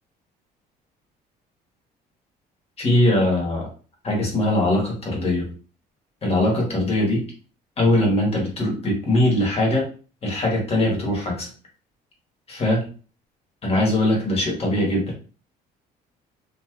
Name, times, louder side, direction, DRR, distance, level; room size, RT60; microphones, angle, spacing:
voice 1, 2.8-3.7 4.0-5.5 6.2-7.3 7.8-9.9 10.2-11.5 12.5-12.9 13.6-15.2, left 1 dB, 35° left, -1 dB, 1.4 m, -21 dB
3.0 x 2.9 x 2.3 m, 0.38 s
cardioid pair, 110°, 17 cm